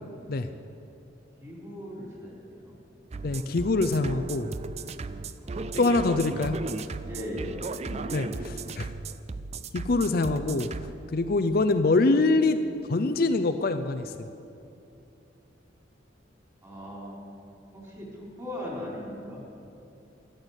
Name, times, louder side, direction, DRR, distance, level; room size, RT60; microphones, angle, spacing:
voice 1, 1.4-2.7 5.4-6.1 6.8-8.5 16.6-17.1 17.7-19.4, left 1 dB, 20° right, -4 dB, 4.0 m, -39 dB
sound 1, 3.1-10.9, right 3 dB, 35° right, 0.4 m, -36 dB
voice 2, 3.2-4.5 5.8-6.6 8.1-8.9 9.7-10.7 11.1-12.6 12.9-14.3, left 3 dB, 55° left, 9 dB, 0.5 m, -24 dB
13.0 x 11.5 x 8.1 m, 2.8 s
head